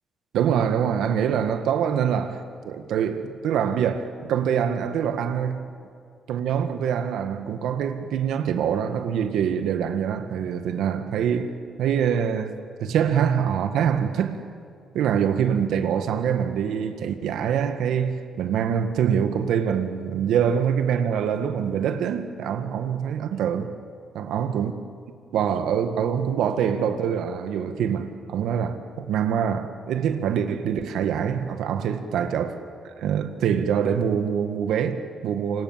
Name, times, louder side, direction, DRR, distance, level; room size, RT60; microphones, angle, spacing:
voice 1, 0.3-5.7 6.3-11.5 11.8-12.5 12.8-14.4 14.9-23.7 24.1-24.7 25.3-32.6 33.0-35.6, right 8 dB, 85° right, 1.8 m, -24 dB
27.5 x 26.0 x 7.5 m
cardioid pair, 95°, 0 cm